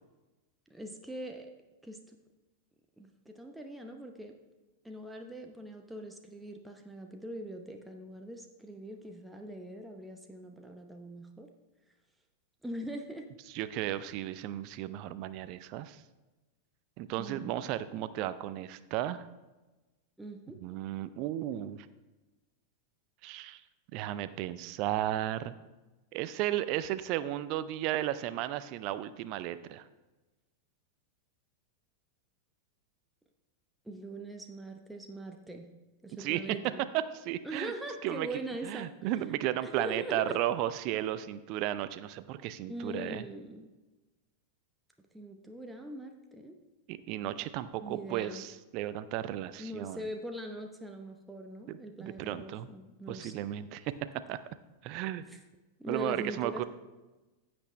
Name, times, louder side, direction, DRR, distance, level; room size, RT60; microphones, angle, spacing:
voice 1, 0.7-1.5 1.8-2.2 3.0-4.4 4.8-11.5 12.6-13.3 17.1-17.5 20.2-20.6 33.8-35.7 36.0-36.8 37.4-39.1 39.6-40.4 42.7-43.7 45.1-46.6 47.8-48.5 49.6-53.5 55.3-55.4 55.8-56.6, right 1 dB, 5° right, 3 dB, 0.8 m, -42 dB
voice 2, 13.5-16.0 17.0-19.3 20.6-21.9 23.2-23.6 23.9-25.6 26.1-29.8 36.2-36.4 37.1-37.7 38.0-38.3 38.6-43.2 46.9-50.0 51.7-52.7 53.1-53.9 54.3-54.4 54.8-55.3 55.9-56.6, right 13 dB, 40° right, 14 dB, 0.4 m, -34 dB
15.0 x 6.1 x 3.2 m, 1.1 s
figure-of-eight pair, 90°, 0 cm